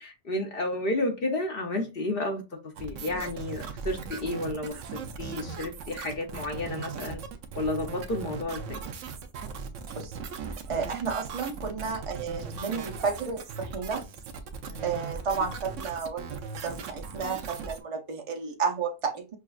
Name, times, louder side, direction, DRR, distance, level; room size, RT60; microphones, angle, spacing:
voice 1, 0.0-2.4 2.8-7.2 7.5-8.8 14.6-14.8, left 2 dB, 55° left, 1.0 m, -31 dB
sound 1, 2.8-17.8, right 5 dB, 85° right, 1.0 m, -38 dB
voice 2, 9.9-14.0 14.8-19.4, right 5 dB, 40° right, 0.5 m, -32 dB
5.9 x 2.3 x 2.4 m
omnidirectional pair, 1.2 m